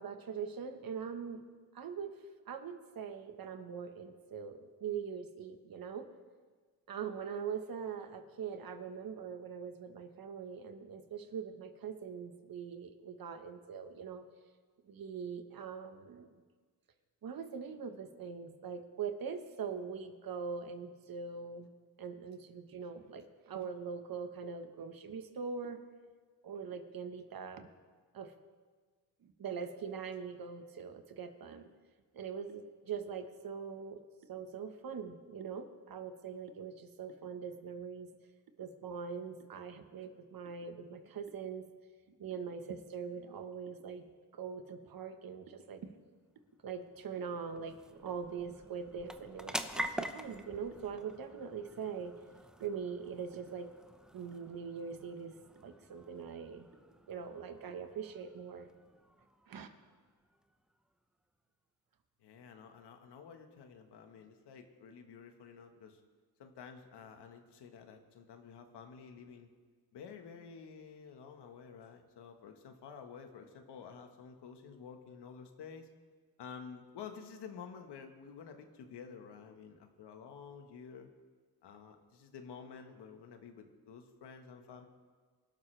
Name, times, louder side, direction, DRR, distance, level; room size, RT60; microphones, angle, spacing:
voice 1, 0.0-1.4 1.7-2.1 2.5-6.1 6.9-14.2 14.9-16.3 17.2-21.7 22.0-25.8 26.4-27.7 28.1-28.3 29.2-31.6 32.1-34.0 34.3-38.1 38.6-41.6 42.2-44.1 44.3-45.9 46.6-52.2 52.6-53.7 54.1-55.3 55.6-56.7 57.1-58.7 59.5-59.7, right 6 dB, 60° right, 7 dB, 1.4 m, -42 dB
sound 1, 46.1-60.9, equal, ahead, 0.8 m, -47 dB
voice 2, 62.2-66.0 66.4-69.5 69.9-75.9 76.4-81.1 81.6-84.9, left 6 dB, 80° left, 5 dB, 1.6 m, -51 dB
24.5 x 12.0 x 3.4 m, 1.5 s
cardioid pair, 90°, 40 cm